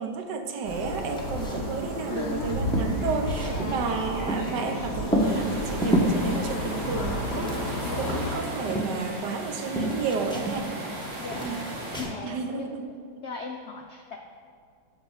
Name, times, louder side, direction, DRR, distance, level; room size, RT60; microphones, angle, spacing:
voice 1, 0.0-10.7 11.4-11.7 12.2-12.9, right 5 dB, 75° right, 6 dB, 1.4 m, -32 dB
sound 1, 0.6-8.3, equal, 60° left, 3.3 m, -32 dB
sound 2, 1.1-1.8 2.1-2.2 2.4-4.7 5.1-6.2 6.8-9.5 9.7-11.0 11.3-12.1, equal, 5° left, 0.5 m, -29 dB
voice 2, 2.1-2.5 3.4-3.9 6.8-7.3 7.9-8.2 11.2-11.6 12.0-12.7 13.2-14.2, left 5 dB, 80° left, 3 dB, 0.6 m, -38 dB
sound 3, 5.2-12.0, right 1 dB, 45° right, 1.8 m, -37 dB
11.0 x 4.0 x 7.2 m, 2.1 s
omnidirectional pair, 1.9 m